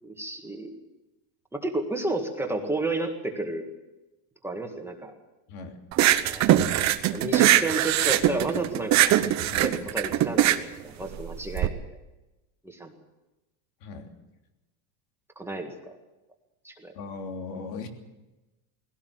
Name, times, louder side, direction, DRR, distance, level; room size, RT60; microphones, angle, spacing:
voice 1, 0.0-0.7 1.5-3.7 4.4-5.1 6.2-6.8 7.1-9.1 9.6-11.7 12.6-12.9 15.4-15.9 16.6-16.9, right 2 dB, 5° right, 2 dB, 1.8 m, -32 dB
voice 2, 5.5-5.8 9.4-9.7 13.8-14.1 16.9-17.9, left 4 dB, 80° left, 4 dB, 3.4 m, -38 dB
sound 1, 5.9-11.7, right 13 dB, 35° right, 1.0 m, -21 dB
19.5 x 17.0 x 7.9 m, 1.0 s
cardioid pair, 155°, 48 cm